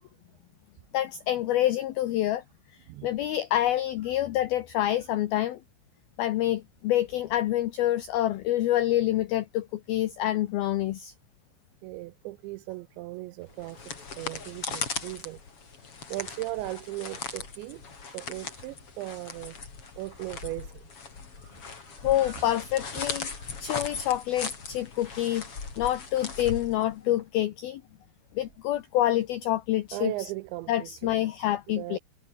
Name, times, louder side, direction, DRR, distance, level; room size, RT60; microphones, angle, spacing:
voice 1, 0.9-2.4 3.0-5.6 6.2-11.1 22.0-23.3 23.6-25.4 25.8-27.8 28.4-30.3 30.7-32.0, left 13 dB, 85° left, 2.1 m, -27 dB
voice 2, 11.8-15.4 16.1-17.8 18.1-19.6 20.0-20.8 21.4-22.4 22.9-23.5 29.9-31.2 31.8-32.0, right 18 dB, 85° right, 2.7 m, -38 dB
sound 1, 13.5-27.2, left 5 dB, 30° left, 4.3 m, -38 dB
omnidirectional pair, 5.7 m